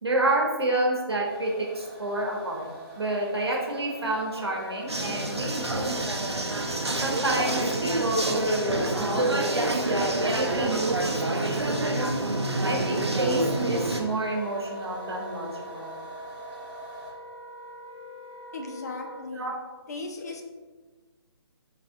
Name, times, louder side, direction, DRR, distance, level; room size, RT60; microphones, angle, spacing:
voice 1, 0.0-2.7 3.0-5.9 6.9-11.8 12.6-15.9 19.3-19.5, right 2 dB, 70° right, -1 dB, 1.0 m, -29 dB
sound 1, 1.2-17.1, right 1 dB, 20° right, 0.7 m, -44 dB
Wind instrument woodwind instrument, 4.3-19.3, equal, 90° left, 0.6 m, -43 dB
sound 2, 4.9-14.0, right 2 dB, 90° right, 0.5 m, -27 dB
voice 2, 18.5-19.5 19.9-20.4, left 3 dB, 40° left, 2 dB, 0.4 m, -36 dB
4.1 x 3.3 x 2.6 m, 1.4 s
figure-of-eight pair, 140°, 14 cm